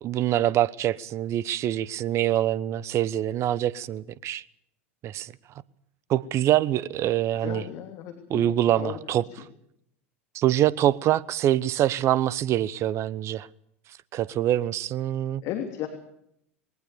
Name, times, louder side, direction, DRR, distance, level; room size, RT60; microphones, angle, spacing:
voice 1, 0.0-4.4 5.0-5.3 6.1-7.6 8.3-9.2 10.3-13.5 14.1-15.4, right 12 dB, 40° right, 0.9 m, -25 dB
voice 2, 7.3-9.0 15.4-15.9, left 11 dB, 50° left, 3.1 m, -35 dB
21.5 x 19.0 x 7.0 m
hypercardioid pair, 85°, 7 cm